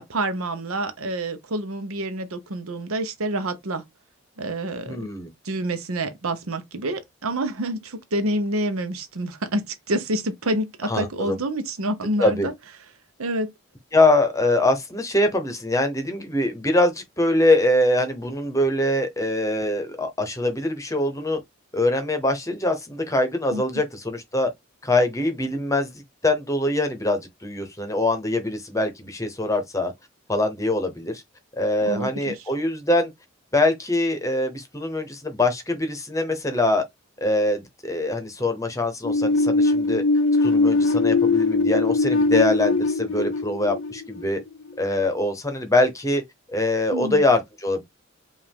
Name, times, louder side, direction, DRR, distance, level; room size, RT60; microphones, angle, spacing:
voice 1, 0.0-3.8 4.4-5.1 5.4-12.5 13.2-13.5 23.5-23.6 31.8-32.4 46.9-47.2, right 1 dB, 85° right, 0.9 m, -28 dB
voice 2, 4.9-5.3 10.8-11.4 12.2-12.5 13.9-21.4 21.7-24.5 24.8-29.9 30.3-31.2 31.5-33.1 33.5-36.8 37.2-40.0 40.4-44.4 44.8-46.2 46.5-47.8, left 2 dB, 15° left, 0.8 m, -23 dB
sound 1, 39.0-44.7, left 3 dB, 65° left, 0.5 m, -21 dB
5.2 x 2.5 x 3.6 m
head